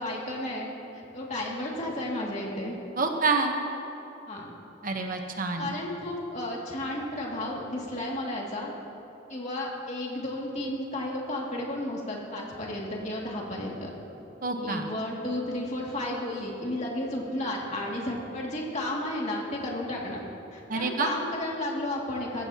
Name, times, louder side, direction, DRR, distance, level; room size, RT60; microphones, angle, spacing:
voice 1, 0.0-2.8 4.3-4.5 5.6-8.7 9.3-13.9 14.6-20.2 20.5-22.5, left 1 dB, 35° left, -3 dB, 2.3 m, -33 dB
voice 2, 3.0-3.5 4.8-5.8 14.4-14.8 20.7-21.1, right 4 dB, 45° right, 3 dB, 1.0 m, -27 dB
22.5 x 15.0 x 2.9 m, 3.0 s
head